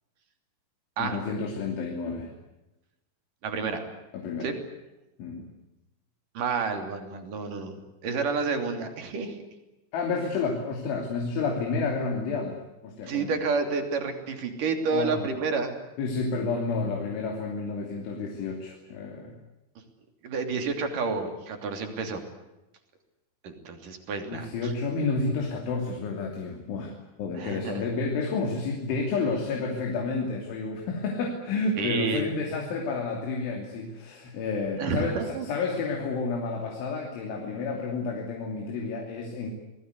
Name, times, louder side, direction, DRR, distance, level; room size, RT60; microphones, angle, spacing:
voice 1, 1.0-2.3 4.1-4.5 5.2-5.5 9.9-13.4 14.9-15.3 16.0-19.3 24.3-39.5, left 4 dB, 80° left, 2 dB, 5.3 m, -30 dB
voice 2, 3.4-3.8 4.4-4.6 6.3-9.4 13.1-15.7 20.2-22.2 23.4-24.7 27.4-27.9 31.8-32.3 34.8-35.5, right 4 dB, 50° right, 6 dB, 4.2 m, -30 dB
27.5 x 20.0 x 8.3 m, 0.97 s
omnidirectional pair, 5.4 m